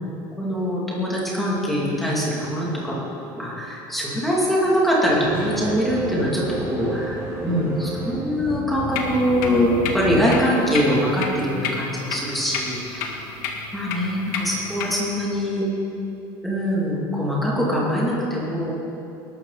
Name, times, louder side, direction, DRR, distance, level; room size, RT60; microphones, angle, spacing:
voice 1, 0.4-3.0 3.3-13.1 13.7-15.7 16.4-18.7, equal, ahead, -6 dB, 2.6 m, -23 dB
sound 1, 5.1-10.4, right 1 dB, 25° right, 2.4 m, -31 dB
sound 2, 8.9-14.9, left 5 dB, 70° left, 1.9 m, -32 dB
20.5 x 12.5 x 4.1 m, 2.8 s
cardioid pair, 175°, 10 cm